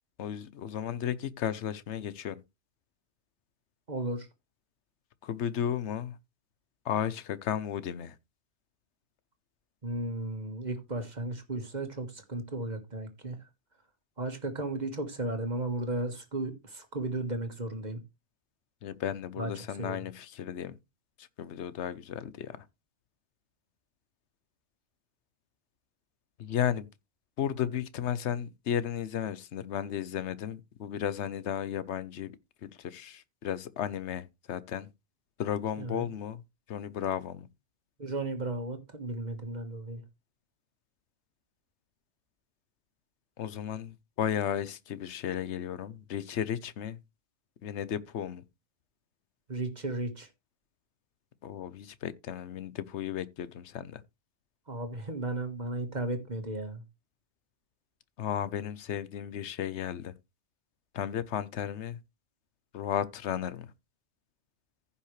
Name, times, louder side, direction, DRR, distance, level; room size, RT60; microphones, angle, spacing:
voice 1, 0.2-2.4 5.2-6.1 6.8-8.1 18.8-20.8 21.2-22.6 26.4-26.9 27.4-32.3 32.6-34.9 35.4-36.4 36.7-37.5 43.4-47.0 47.6-48.4 51.4-54.0 58.2-60.1 60.9-62.0 62.7-63.7, left 9 dB, 75° left, 1.1 m, -34 dB
voice 2, 3.9-4.3 9.8-13.4 14.2-18.0 19.4-19.5 19.8-20.0 35.8-36.1 38.0-40.0 49.5-50.3 54.7-56.8, right 2 dB, 40° right, 1.6 m, -35 dB
15.0 x 5.6 x 3.2 m
omnidirectional pair, 1.2 m